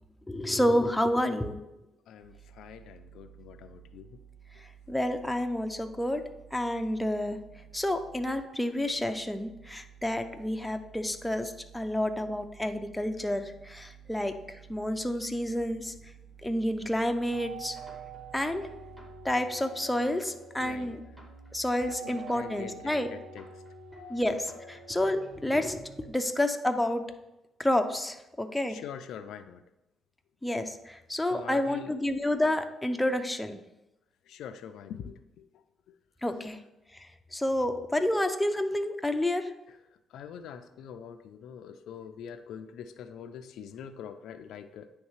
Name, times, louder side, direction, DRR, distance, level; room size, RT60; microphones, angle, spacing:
voice 1, 0.3-1.6 4.6-6.2 6.5-7.4 7.7-15.9 16.4-17.8 18.3-18.7 19.2-21.0 21.5-23.1 24.1-27.0 27.6-28.8 30.4-33.6 36.2-36.6 36.9-39.5, left 1 dB, 5° left, 6 dB, 0.5 m, -29 dB
voice 2, 2.1-4.2 20.6-21.0 22.0-23.6 24.1-24.2 28.7-29.6 31.3-31.9 34.2-35.9 39.7-39.8 40.1-44.9, left 8 dB, 80° left, 9 dB, 0.3 m, -44 dB
sound 1, 2.2-8.4 8.7-19.3, right 8 dB, 65° right, 1.3 m, -53 dB
sound 2, 17.3-26.1, right 3 dB, 10° right, 1.4 m, -46 dB
9.4 x 3.2 x 3.1 m, 0.91 s
cardioid pair, 90°, 0 cm